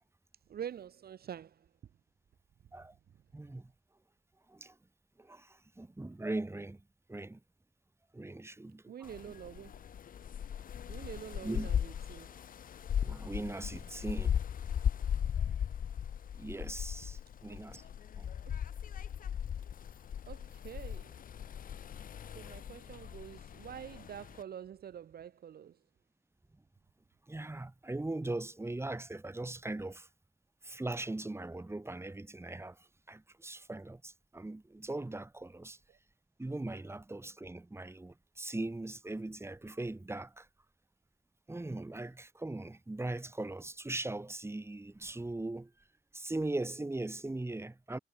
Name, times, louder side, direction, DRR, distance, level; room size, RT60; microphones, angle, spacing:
voice 1, 0.5-1.6 8.9-9.8 10.9-12.3 20.3-21.1 22.3-25.8, right 9 dB, 50° right, 1.0 m, -46 dB
voice 2, 3.3-3.7 4.5-4.8 5.2-6.8 7.1-7.4 8.1-9.3 11.4-11.7 13.0-14.4 16.3-17.8 18.1-18.3 27.3-30.1 30.6-35.8 36.4-40.5 41.5-45.7 46.1-48.0, right 2 dB, 10° right, 2.6 m, -40 dB
sound 1, 9.0-24.4, left 9 dB, 45° left, 0.7 m, -38 dB
cardioid pair, 90°, 20 cm